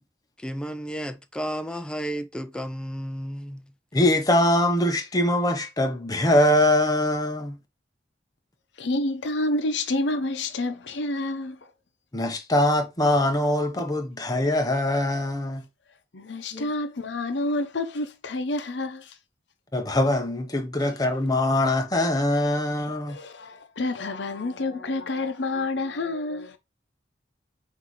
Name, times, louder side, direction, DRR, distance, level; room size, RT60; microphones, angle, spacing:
voice 1, 0.4-3.7, equal, 5° left, 0.3 m, -32 dB
voice 2, 3.9-7.6 12.1-15.6 16.5-16.7 19.7-23.2, left 1 dB, 20° left, 0.7 m, -23 dB
voice 3, 8.8-11.7 16.1-19.2 20.8-21.0 23.1-26.6, left 2 dB, 75° left, 0.7 m, -29 dB
5.9 x 2.7 x 3.0 m
head